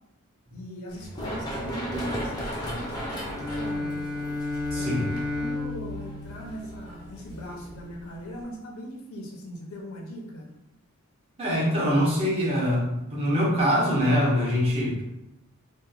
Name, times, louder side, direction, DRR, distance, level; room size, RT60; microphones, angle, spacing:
voice 1, 0.5-4.0 4.6-10.5, equal, 70° left, 0 dB, 0.5 m, -39 dB
Run, 0.9-8.4, equal, 20° left, 0.4 m, -36 dB
Bowed string instrument, 3.2-7.3, left 2 dB, 50° right, 1.1 m, -33 dB
voice 2, 4.7-5.0 11.4-15.0, equal, 25° right, -5 dB, 0.6 m, -24 dB
2.8 x 2.1 x 2.3 m, 0.87 s
head